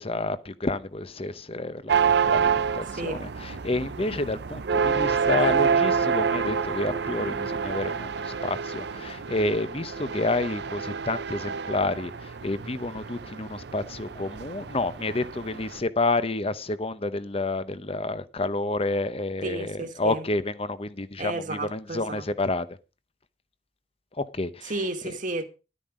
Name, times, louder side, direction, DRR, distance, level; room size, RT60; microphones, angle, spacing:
voice 1, 0.0-22.7 24.2-24.7, left 2 dB, 30° left, 0.8 m, -29 dB
sound 1, 1.9-15.8, right 6 dB, 65° right, 0.6 m, -28 dB
voice 2, 19.4-20.3 21.2-22.3 24.6-25.4, right 2 dB, 45° right, 1.8 m, -32 dB
12.0 x 9.3 x 5.0 m
head